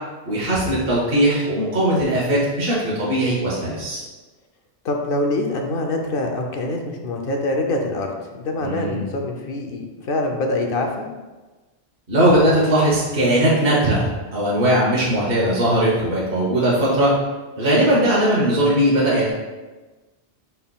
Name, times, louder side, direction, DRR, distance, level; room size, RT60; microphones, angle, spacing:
voice 1, 0.2-4.0 8.6-9.0 12.1-17.1 17.6-19.3, right 1 dB, 60° right, -6 dB, 1.2 m, -19 dB
voice 2, 4.8-11.1 17.9-18.0, left 2 dB, 60° left, 2 dB, 0.8 m, -25 dB
5.4 x 4.4 x 2.2 m, 1.2 s
omnidirectional pair, 1.1 m